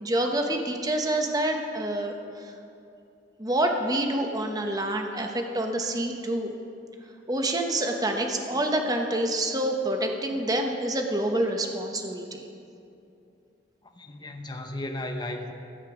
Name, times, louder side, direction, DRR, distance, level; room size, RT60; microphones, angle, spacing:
voice 1, 0.0-2.1 3.4-6.5 7.3-12.4, right 1 dB, 20° right, 3 dB, 0.9 m, -27 dB
voice 2, 14.0-15.5, left 1 dB, 25° left, 4 dB, 0.8 m, -35 dB
13.5 x 9.0 x 4.9 m, 2.6 s
head